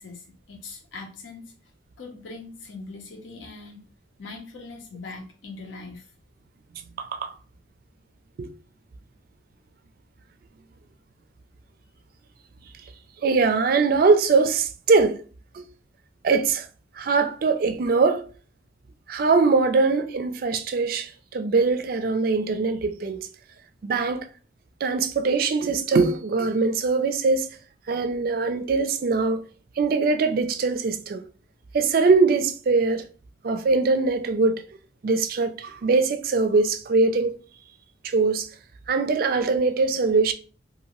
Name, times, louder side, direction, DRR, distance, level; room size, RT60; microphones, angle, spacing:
voice 1, 0.0-1.5 2.0-3.8 4.2-6.1, left 3 dB, 85° left, 0.7 m, -41 dB
voice 2, 7.0-7.3 8.4-8.5 13.2-15.2 15.5-15.6 16.2-16.7 17.0-18.3 19.1-23.3 23.8-24.3 24.8-27.5 27.9-29.4 29.8-31.2 31.7-33.0 33.4-34.6 35.0-37.4 38.0-38.5 38.9-40.3, right 4 dB, 50° right, 0.3 m, -22 dB
2.8 x 2.5 x 2.9 m
head